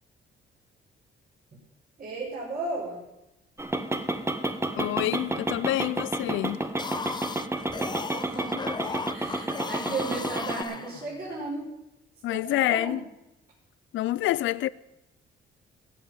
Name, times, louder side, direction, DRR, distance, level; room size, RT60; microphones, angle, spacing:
voice 1, 2.0-3.0 7.8-8.7 9.1-11.7 12.3-13.0, right 3 dB, 45° right, 5.7 m, -35 dB
sound 1, 3.6-10.6, right 1 dB, 15° right, 1.3 m, -31 dB
voice 2, 4.8-6.6 12.2-13.0 13.9-14.7, left 15 dB, 75° left, 0.5 m, -27 dB
sound 2, 6.6-11.4, left 5 dB, 20° left, 0.5 m, -37 dB
16.5 x 6.0 x 9.4 m
cardioid pair, 90°, 20 cm